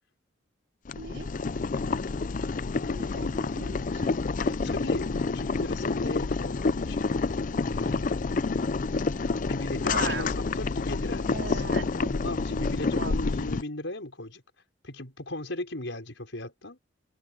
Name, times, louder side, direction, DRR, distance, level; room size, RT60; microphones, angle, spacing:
Boiling, 0.9-13.6, left 4 dB, 45° left, 0.5 m, -28 dB
voice 1, 1.0-1.3 2.8-4.2 9.8-10.3 11.3-12.2 12.9-13.2, right 3 dB, 70° right, 4.0 m, -38 dB
voice 2, 4.5-7.2 7.6-8.2 9.4-11.7 12.2-14.4 14.8-16.8, left 1 dB, 75° left, 5.5 m, -37 dB
head